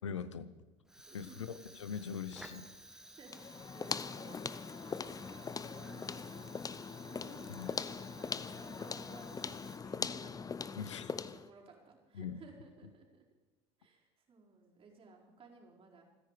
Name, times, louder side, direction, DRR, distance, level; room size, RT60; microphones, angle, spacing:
voice 1, 0.0-0.5 1.1-1.5 1.8-2.7 7.5-7.7 10.8-11.1 12.1-12.4, left 7 dB, 90° left, 15 dB, 0.8 m, -41 dB
Fire, 0.8-10.2, right 1 dB, 5° right, 1.6 m, -55 dB
voice 2, 1.1-1.7 2.9-10.4 10.8-13.2 13.8-16.0, right 4 dB, 40° right, -1 dB, 4.8 m, -58 dB
sound 1, 3.3-11.5, left 5 dB, 25° left, 0.7 m, -41 dB
28.0 x 10.5 x 4.9 m, 1.2 s
hypercardioid pair, 70°, 15 cm